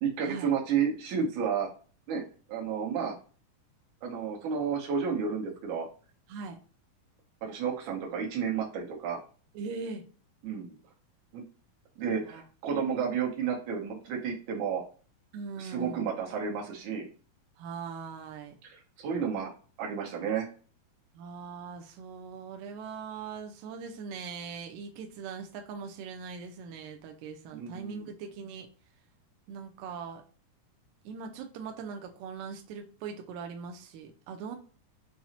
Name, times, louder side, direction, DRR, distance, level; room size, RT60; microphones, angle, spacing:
voice 1, 0.0-1.7 2.1-2.2 2.5-3.1 4.0-5.9 7.4-9.2 10.4-10.8 11.3-11.4 12.0-14.8 15.6-17.1 18.6-19.5 19.8-20.5 27.5-28.1, right 6 dB, 70° right, 0 dB, 2.1 m, -31 dB
voice 2, 9.6-10.1 12.2-12.4 15.3-16.1 17.6-18.5 21.1-28.7 29.5-30.2 31.1-34.6, right 5 dB, 90° right, 3 dB, 1.7 m, -41 dB
5.7 x 2.0 x 2.8 m, 0.40 s
omnidirectional pair, 4.0 m